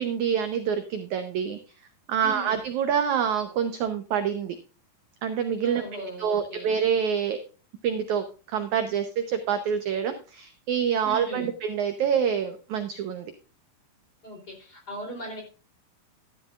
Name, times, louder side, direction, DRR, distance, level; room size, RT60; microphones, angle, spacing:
voice 1, 0.0-1.6 2.1-4.5 5.2-7.4 7.8-13.2, right 7 dB, 75° right, 8 dB, 1.7 m, -27 dB
voice 2, 2.2-2.5 5.6-6.7 11.0-11.5 14.2-15.4, right 1 dB, 25° left, 2 dB, 3.4 m, -38 dB
12.5 x 12.0 x 2.4 m, 0.35 s
omnidirectional pair, 4.6 m